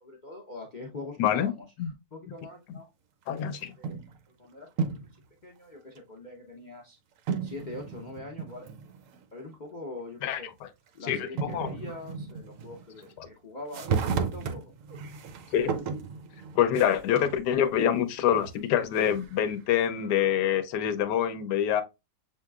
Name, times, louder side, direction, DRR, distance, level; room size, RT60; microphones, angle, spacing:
voice 1, 0.0-1.7 2.1-2.9 3.8-4.0 4.4-5.1 5.4-7.0 7.4-8.7 9.3-10.5 10.9-14.7, left 2 dB, 55° left, 0.5 m, -43 dB
voice 2, 1.2-1.5 1.8-1.9 3.3-3.7 10.2-10.7 11.0-11.7 15.5-15.7 16.6-21.8, left 9 dB, 70° left, 1.2 m, -26 dB
sound 1, 3.4-4.2 4.7-5.2 6.0-6.1 7.3-9.2 9.5-9.6 10.9-11.0 11.4-13.3 13.7-17.4 17.9-19.5, right 5 dB, 65° right, 0.8 m, -34 dB
7.1 x 2.8 x 2.3 m
omnidirectional pair, 2.0 m